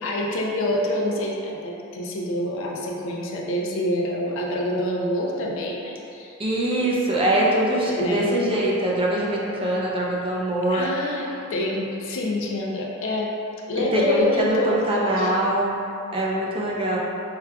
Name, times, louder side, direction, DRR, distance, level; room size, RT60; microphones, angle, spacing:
voice 1, 0.0-6.3 7.9-8.4 10.7-13.3 13.7-15.3, left 1 dB, 65° left, -1 dB, 0.4 m, -26 dB
voice 2, 6.4-10.9 11.2-11.3 13.8-15.8 16.1-17.0, right 1 dB, 25° right, -4 dB, 0.5 m, -23 dB
4.7 x 2.3 x 2.2 m, 2.6 s
head